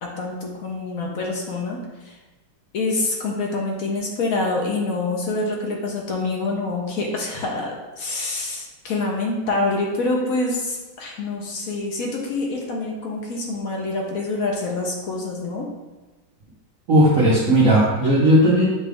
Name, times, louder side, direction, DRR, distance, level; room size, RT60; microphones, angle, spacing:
voice 1, 0.0-2.1 2.7-15.7, left 2 dB, 65° left, -1 dB, 0.9 m, -26 dB
voice 2, 16.9-18.7, equal, 55° right, -7 dB, 0.9 m, -16 dB
6.6 x 2.3 x 3.4 m, 1.2 s
omnidirectional pair, 2.1 m